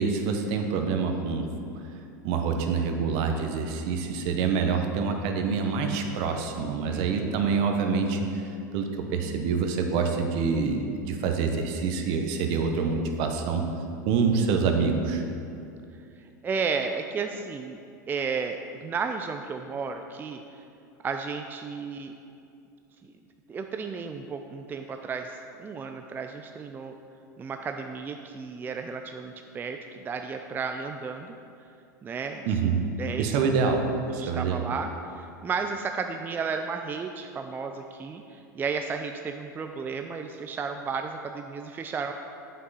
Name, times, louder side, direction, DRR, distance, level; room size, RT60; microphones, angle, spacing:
voice 1, 0.0-1.5 2.2-8.3 8.7-13.6 14.1-15.2 32.4-32.8 33.2-33.8 34.1-34.7, right 5 dB, 55° right, 5 dB, 0.9 m, -26 dB
voice 2, 6.8-7.5 16.4-17.8 18.1-20.4 21.0-22.1 23.0-23.1 23.5-26.9 27.4-31.3 32.0-33.3 33.7-33.8 34.1-42.1, right 5 dB, 20° right, 5 dB, 0.3 m, -33 dB
7.5 x 5.5 x 4.1 m, 2.6 s
hypercardioid pair, 95°, 10 cm